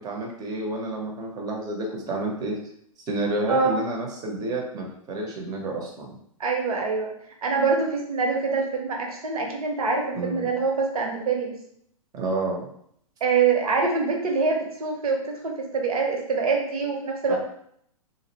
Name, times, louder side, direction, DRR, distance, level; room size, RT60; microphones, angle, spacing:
voice 1, 0.0-2.6 3.1-6.1 10.1-10.5 12.1-12.7 17.3-17.4, right 2 dB, 20° right, 0 dB, 0.5 m, -30 dB
voice 2, 3.5-3.8 6.4-7.1 7.4-11.5 13.2-17.4, right 4 dB, 75° right, 1 dB, 0.7 m, -25 dB
2.5 x 2.0 x 2.7 m, 0.69 s
hypercardioid pair, 120°, 19 cm